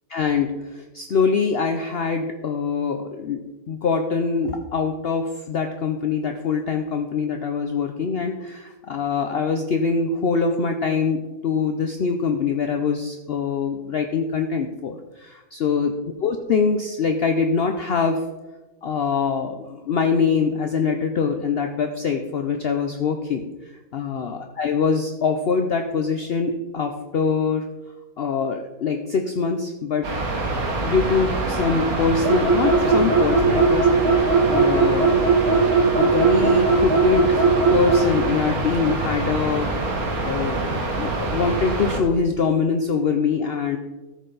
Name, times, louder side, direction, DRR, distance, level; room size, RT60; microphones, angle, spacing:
voice 1, 0.1-3.4 3.7-15.9 16.2-18.2 18.8-23.5 23.9-27.7 28.2-30.1 30.8-35.5 36.0-39.7 40.2-43.8, left 5 dB, 55° left, 5 dB, 0.7 m, -24 dB
sound 1, 30.0-42.0, right 2 dB, 80° right, 1.9 m, -26 dB
sound 2, 32.2-38.1, right 4 dB, 20° right, 1.3 m, -18 dB
13.5 x 6.5 x 3.9 m, 1.2 s
omnidirectional pair, 1.5 m